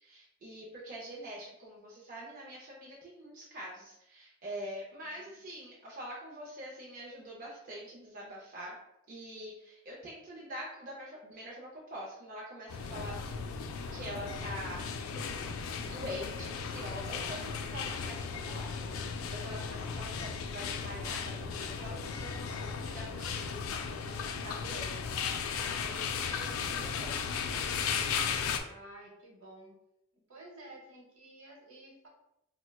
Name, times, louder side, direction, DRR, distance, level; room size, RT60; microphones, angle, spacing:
voice 1, 0.0-8.8 9.1-15.6 15.8-27.3, equal, 40° right, -4 dB, 0.5 m, -45 dB
voice 2, 5.0-5.4 28.7-29.8 30.3-32.1, right 1 dB, 70° right, -1 dB, 0.9 m, -52 dB
sound 1, 12.7-28.6, left 6 dB, 75° left, 0.3 m, -36 dB
4.2 x 2.1 x 2.2 m, 0.82 s
head